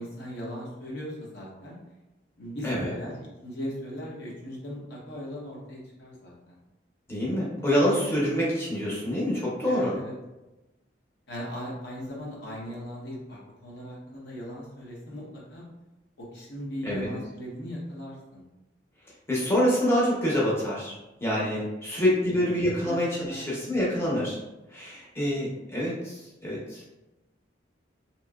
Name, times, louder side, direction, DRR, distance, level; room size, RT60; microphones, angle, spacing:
voice 1, 0.0-1.8 2.4-6.6 9.7-10.1 11.3-15.6 16.2-18.4 21.3-21.5 21.9-22.4 22.8-23.7, equal, 65° left, -4 dB, 0.8 m, -38 dB
voice 2, 7.1-9.9 16.8-17.1 19.3-24.4 24.7-26.8, equal, 15° left, -7 dB, 0.7 m, -26 dB
2.9 x 2.6 x 2.3 m, 1.0 s
head